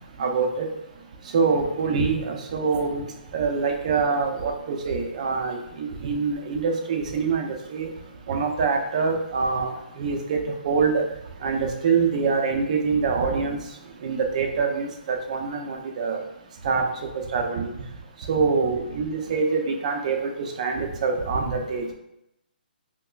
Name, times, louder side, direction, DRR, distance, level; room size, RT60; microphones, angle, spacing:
voice 1, 0.2-0.7 1.3-3.0 3.3-7.9 8.3-10.4 10.6-11.0 11.4-13.6 14.0-16.2 16.6-16.9 17.1-17.7 18.3-20.3 20.6-21.8, right 5 dB, 45° right, 3 dB, 0.6 m, -25 dB
3.6 x 2.9 x 2.3 m, 0.84 s
hypercardioid pair, 160°, 5 cm